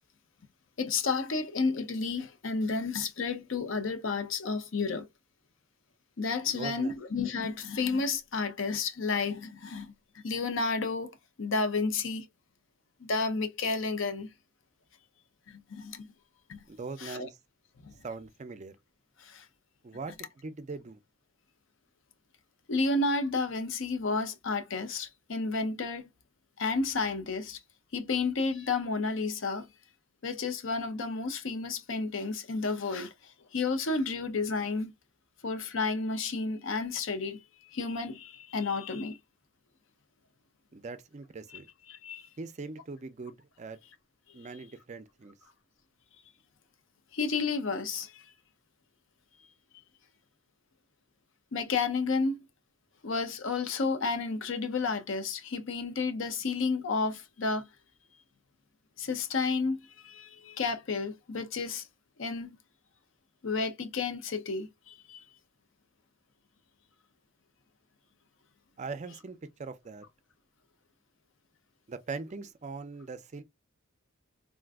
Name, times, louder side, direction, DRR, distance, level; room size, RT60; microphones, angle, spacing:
voice 1, 0.8-5.1 6.2-9.9 10.2-11.1 11.4-12.3 13.0-14.3 15.5-16.1 16.5-16.6 17.0-17.3 17.8-17.9 19.2-19.5 22.7-26.0 26.6-27.6 27.9-29.7 30.2-34.9 35.4-39.2 41.9-42.3 47.1-48.3 51.5-52.4 53.0-57.7 59.0-61.8 62.2-62.6 63.4-65.2, left 4 dB, 65° left, 0.6 m, -31 dB
voice 2, 6.4-6.9 16.7-17.4 18.0-18.7 19.8-21.0 40.7-41.7 42.4-43.8 44.3-45.3 68.8-70.0 71.9-73.4, right 4 dB, 35° right, 0.4 m, -41 dB
3.7 x 2.5 x 2.3 m
head